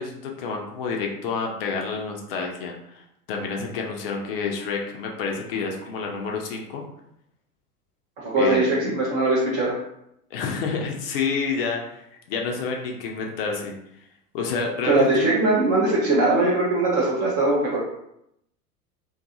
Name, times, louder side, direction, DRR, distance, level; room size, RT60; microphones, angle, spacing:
voice 1, 0.0-3.0 3.3-6.8 8.4-8.7 10.3-13.7 14.3-15.2, left 5 dB, 40° left, 1 dB, 0.4 m, -29 dB
voice 2, 8.2-9.8 14.9-17.8, right 2 dB, 20° right, -5 dB, 0.3 m, -21 dB
2.5 x 2.3 x 2.5 m, 0.77 s
figure-of-eight pair, 85°, 46 cm